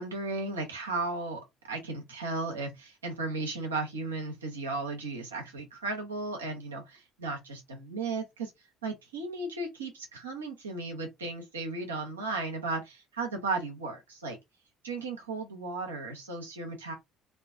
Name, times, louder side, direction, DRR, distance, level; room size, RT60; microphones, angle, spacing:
voice 1, 0.0-8.5 8.8-14.4 14.8-16.9, right 3 dB, 85° right, 0.7 m, -35 dB
2.5 x 2.3 x 3.5 m
figure-of-eight pair, 55°, 0 cm